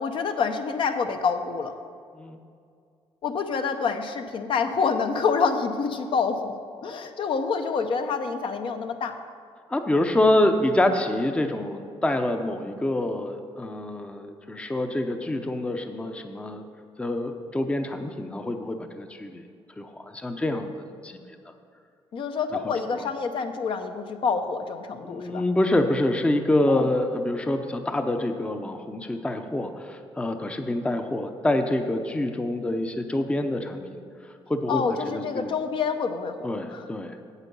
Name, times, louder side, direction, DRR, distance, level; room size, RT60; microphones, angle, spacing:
voice 1, 0.0-1.7 3.2-6.5 6.8-9.2 22.1-25.4 26.7-26.8 34.7-36.9, left 5 dB, 60° left, 7 dB, 0.7 m, -27 dB
voice 2, 9.7-16.6 17.0-19.4 19.8-20.7 21.0-21.2 21.5-21.6 22.6-23.0 25.0-34.0 34.5-35.5 36.4-37.2, left 1 dB, 10° left, 6 dB, 0.6 m, -26 dB
8.2 x 8.1 x 5.4 m, 2.3 s
cardioid pair, 120°, 10 cm